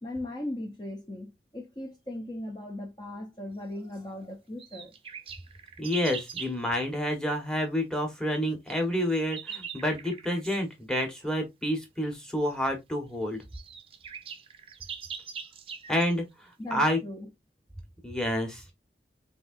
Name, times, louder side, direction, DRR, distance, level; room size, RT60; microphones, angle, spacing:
voice 1, 0.0-4.9 16.6-17.3, left 1 dB, 25° left, 0.6 m, -38 dB
sound 1, 4.6-6.6 8.7-10.6 12.5-12.6 13.1-13.2 13.4-16.1, right 6 dB, 30° right, 0.5 m, -42 dB
voice 2, 5.8-13.4 15.9-16.2 16.7-17.0 18.0-18.6, equal, 5° left, 1.1 m, -29 dB
6.2 x 2.7 x 2.5 m
head